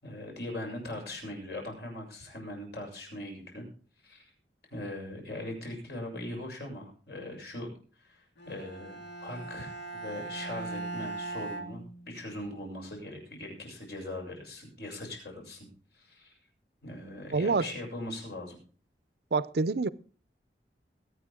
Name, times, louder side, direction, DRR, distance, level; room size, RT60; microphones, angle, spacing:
voice 1, 0.0-3.7 4.0-4.2 4.7-7.7 8.0-15.7 15.9-16.4 16.8-18.6, left 1 dB, 65° left, 7.0 m, -40 dB
Bowed string instrument, 8.4-12.5, right 2 dB, 85° left, 2.2 m, -40 dB
voice 2, 17.3-17.7 19.3-19.9, right 4 dB, 65° right, 0.6 m, -27 dB
22.0 x 9.3 x 3.7 m
head